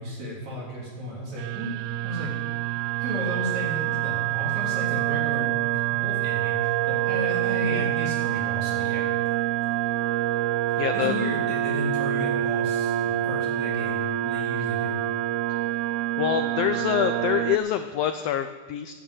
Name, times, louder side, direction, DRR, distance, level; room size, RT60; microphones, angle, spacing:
voice 1, 0.0-2.3 3.0-9.0 10.7-15.0, equal, 65° right, -4 dB, 4.8 m, -34 dB
sound 1, 1.4-17.6, right 13 dB, 85° right, 2.0 m, -26 dB
voice 2, 10.8-11.1 15.5-15.6 16.2-18.9, left 10 dB, 80° left, 9 dB, 1.4 m, -26 dB
10.0 x 9.3 x 8.7 m, 1.3 s
omnidirectional pair, 3.4 m